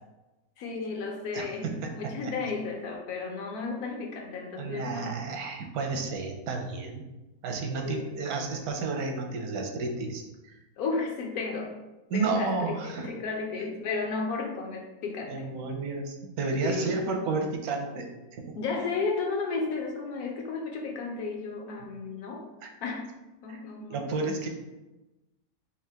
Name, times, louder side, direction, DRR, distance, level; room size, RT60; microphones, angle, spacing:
voice 1, 0.6-5.1 7.8-8.2 10.8-11.7 12.1-15.4 16.6-17.0 18.6-22.4 22.8-23.1 23.4-24.1, left 4 dB, 85° left, 0 dB, 1.2 m, -33 dB
voice 2, 1.3-2.3 4.6-7.0 7.4-10.6 12.1-13.1 15.3-18.5 22.6-22.7 23.5-23.6 23.9-24.5, right 3 dB, 85° right, 3 dB, 1.1 m, -32 dB
3.7 x 2.8 x 3.4 m, 1.0 s
omnidirectional pair, 1.5 m